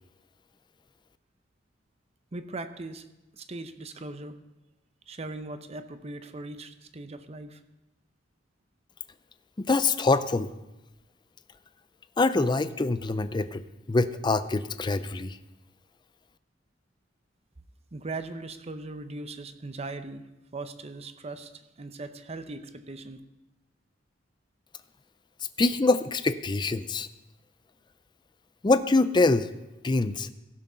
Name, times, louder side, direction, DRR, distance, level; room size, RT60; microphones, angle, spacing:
voice 1, 2.3-3.1 3.3-4.4 5.1-7.6 17.9-20.2 20.5-23.2, right 2 dB, 35° right, 10 dB, 0.7 m, -39 dB
voice 2, 9.6-10.5 12.2-15.4 25.6-27.1 28.6-29.5 29.8-30.3, left 3 dB, 25° left, 12 dB, 0.4 m, -24 dB
16.0 x 6.2 x 5.5 m, 0.98 s
head